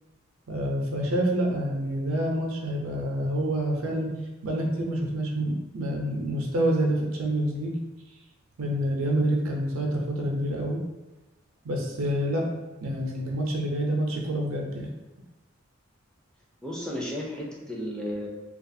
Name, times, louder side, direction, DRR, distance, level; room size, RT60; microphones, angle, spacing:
voice 1, 0.5-4.1 4.4-7.7 8.6-10.8 11.6-12.5 12.8-14.9, right 1 dB, 85° right, 0 dB, 0.5 m, -27 dB
voice 2, 16.6-18.3, equal, 5° left, -4 dB, 0.4 m, -33 dB
2.4 x 2.3 x 2.6 m, 1.1 s
head